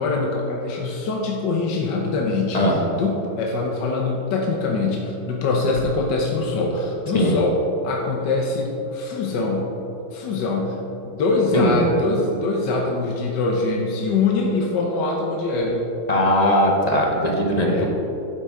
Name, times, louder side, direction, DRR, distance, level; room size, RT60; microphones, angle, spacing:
voice 1, 0.0-2.6 2.9-9.7 10.1-15.8 17.6-17.9, left 3 dB, 75° left, -1 dB, 1.5 m, -23 dB
voice 2, 16.1-17.9, left 1 dB, 30° left, -1 dB, 0.9 m, -19 dB
9.8 x 7.9 x 3.7 m, 2.9 s
omnidirectional pair, 2.0 m